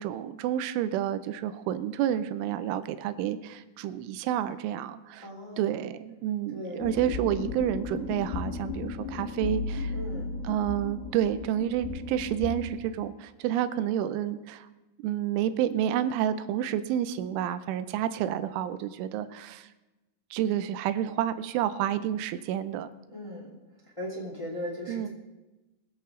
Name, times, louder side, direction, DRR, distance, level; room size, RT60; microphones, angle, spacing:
voice 1, 0.0-5.3 5.6-9.9 10.4-14.7 15.0-19.7 20.3-22.9 24.9-25.1, right 11 dB, 85° right, 12 dB, 3.0 m, -29 dB
voice 2, 5.2-5.8 6.5-6.8 9.9-10.3 23.1-23.5 24.0-25.1, left 1 dB, 10° left, -4 dB, 2.1 m, -38 dB
sound 1, 6.8-12.8, left 4 dB, 70° left, 3.4 m, -35 dB
23.0 x 8.1 x 3.7 m, 1.1 s
omnidirectional pair, 5.6 m